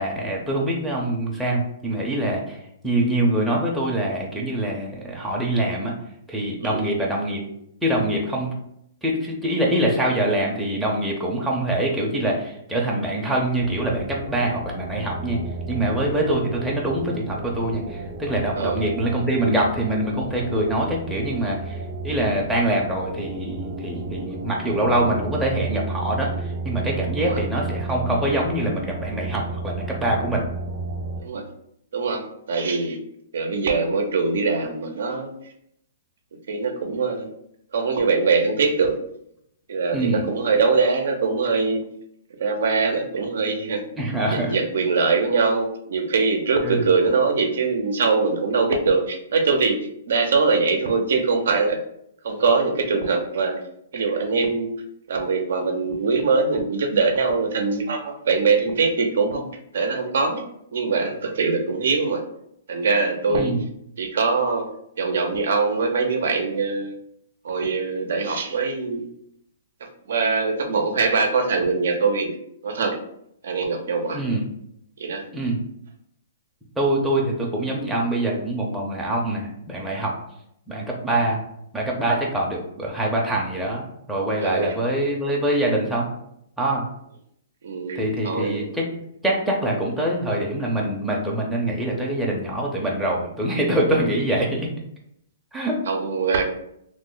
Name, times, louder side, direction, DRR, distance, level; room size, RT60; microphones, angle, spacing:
voice 1, 0.0-2.6 2.8-5.9 6.3-7.4 7.8-8.5 9.0-15.4 15.7-21.8 22.0-26.3 26.6-30.4 39.9-40.3 44.0-44.5 46.6-46.9 63.3-63.6 74.1-74.4 75.3-75.6 76.8-80.1 80.7-81.4 81.7-83.8 84.1-86.1 86.6-86.8 87.9-88.9 89.2-94.7 95.5-95.8, right 1 dB, 5° right, -4 dB, 0.5 m, -24 dB
sound 1, 13.5-31.2, right 3 dB, 35° right, 0.8 m, -33 dB
voice 2, 18.5-18.9 27.2-27.4 31.2-31.4 31.9-32.2 32.5-33.0 33.3-35.3 36.5-37.3 37.7-39.0 39.7-41.8 42.4-43.8 44.3-49.8 50.1-51.8 52.2-53.6 53.9-54.7 55.1-59.5 59.7-60.4 60.7-62.2 62.7-63.6 64.0-64.7 65.0-67.0 67.4-69.1 69.8-73.0 73.4-74.2 75.0-75.2 84.4-84.8 87.6-88.7 95.9-96.4, right 4 dB, 75° right, 4 dB, 0.6 m, -22 dB
3.1 x 2.0 x 3.7 m, 0.75 s
hypercardioid pair, 155°, 0 cm